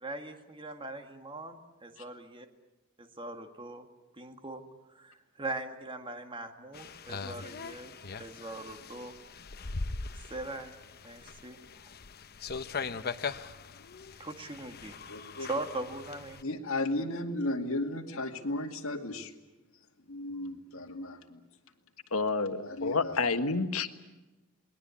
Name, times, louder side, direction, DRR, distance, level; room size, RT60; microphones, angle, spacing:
voice 1, 0.0-2.5 3.0-3.9 4.2-4.6 4.9-7.9 8.2-9.1 10.3-10.7 11.0-11.6 14.2-14.9 15.4-16.4, right 2 dB, 25° right, 1.9 m, -40 dB
sound 1, 6.7-16.4, left 4 dB, 45° left, 0.9 m, -41 dB
voice 2, 15.1-15.5 16.4-19.3 20.1-21.4 22.7-23.3, left 1 dB, 70° left, 2.4 m, -35 dB
voice 3, 22.1-23.9, left 4 dB, 85° left, 1.5 m, -29 dB
28.0 x 20.5 x 8.5 m
head